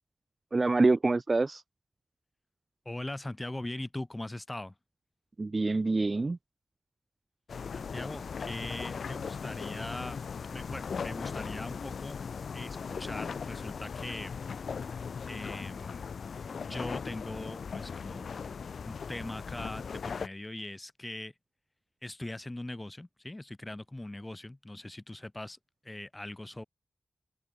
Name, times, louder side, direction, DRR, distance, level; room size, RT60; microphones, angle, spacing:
voice 1, 0.5-1.6 5.4-6.4, right 3 dB, 45° right, 0.8 m, -26 dB
voice 2, 2.9-4.7 7.7-12.2 12.5-14.4 15.3-16.0 16.5-21.3 22.0-25.6 25.8-26.6, left 1 dB, 25° left, 7.3 m, -41 dB
sound 1, 7.5-20.3, left 6 dB, 80° left, 1.0 m, -38 dB
open air
cardioid pair, 50°, 0 cm